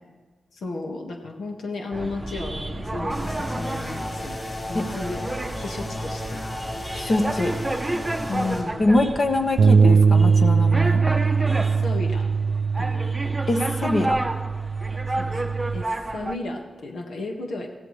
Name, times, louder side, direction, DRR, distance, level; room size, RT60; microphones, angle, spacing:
voice 1, 0.5-4.4 4.7-5.2 5.6-6.4 8.3-8.9 11.6-12.2 12.8-13.2 15.2-17.7, left 3 dB, 85° left, 1 dB, 1.7 m, -33 dB
sound 1, 1.9-16.4, right 2 dB, 15° right, 0.7 m, -31 dB
sound 2, 3.1-8.6, left 1 dB, 25° left, 5.6 m, -33 dB
voice 2, 6.9-7.5 8.8-11.0 13.5-14.2, left 2 dB, 50° left, 5 dB, 1.4 m, -23 dB
Bass guitar, 9.6-15.8, right 5 dB, 90° right, 0.4 m, -21 dB
22.0 x 15.5 x 3.3 m, 1.3 s
wide cardioid pair, 105°, 0 cm